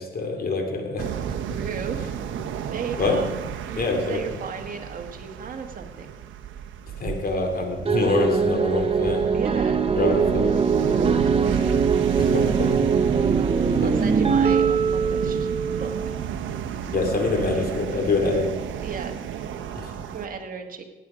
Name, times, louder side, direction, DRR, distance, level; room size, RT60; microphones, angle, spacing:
voice 1, 0.0-1.4 3.0-3.2 3.7-4.4 6.9-9.3 9.9-10.6 12.2-13.2 13.6-13.9 16.9-18.5 19.7-19.9, left 3 dB, 50° left, 3 dB, 2.8 m, -26 dB
sound 1, 1.0-20.3, right 8 dB, 75° right, 1.0 m, -31 dB
voice 2, 1.6-2.0 2.7-3.4 3.6-6.1 9.3-9.8 10.8-11.8 13.8-15.5 15.8-15.9 17.4-17.6 18.8-19.1 20.1-20.8, right 6 dB, 45° right, 3 dB, 1.9 m, -35 dB
sound 2, 7.9-16.3, right 6 dB, 30° right, 0.8 m, -22 dB
17.0 x 9.4 x 5.0 m, 1.1 s
cardioid pair, 90°, 20 cm